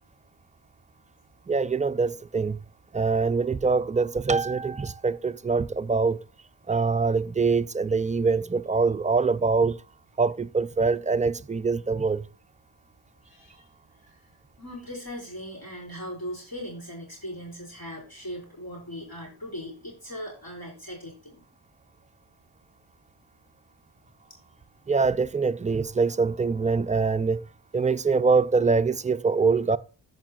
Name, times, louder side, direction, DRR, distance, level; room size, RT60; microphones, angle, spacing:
voice 1, 1.5-2.6 2.9-6.2 6.7-9.8 10.2-12.2 24.9-27.4 27.7-29.8, right 4 dB, 20° right, 0.3 m, -24 dB
voice 2, 13.2-13.6 14.6-21.4, equal, 50° left, 5.1 m, -39 dB
14.5 x 5.5 x 2.4 m
cardioid pair, 55°, 47 cm